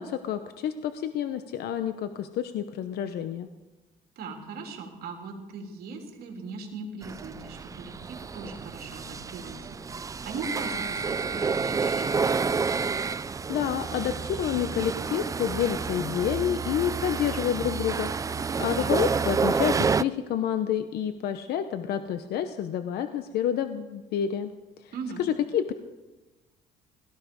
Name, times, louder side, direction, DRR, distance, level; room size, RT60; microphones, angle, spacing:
voice 1, 0.0-3.5 13.5-18.1 18.6-24.5 24.8-24.9 25.2-25.7, left 9 dB, 70° left, 10 dB, 0.9 m, -29 dB
voice 2, 4.1-12.4 18.7-19.0 24.9-25.2, right 4 dB, 65° right, 2 dB, 3.2 m, -39 dB
sound 1, 7.0-20.0, right 5 dB, 20° right, 0.4 m, -29 dB
17.5 x 14.0 x 5.2 m, 1.1 s
cardioid pair, 110°, 17 cm